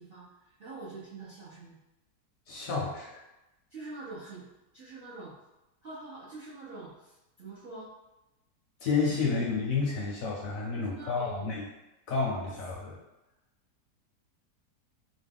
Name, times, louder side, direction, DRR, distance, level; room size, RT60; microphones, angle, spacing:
voice 1, 0.0-1.8 3.7-5.3 5.8-7.9 10.7-11.6, right 3 dB, 55° right, -10 dB, 0.6 m, -45 dB
voice 2, 2.5-3.2 8.8-11.6 12.1-13.0, left 4 dB, 70° left, -3 dB, 0.8 m, -30 dB
3.0 x 2.1 x 3.4 m, 0.97 s
omnidirectional pair, 1.8 m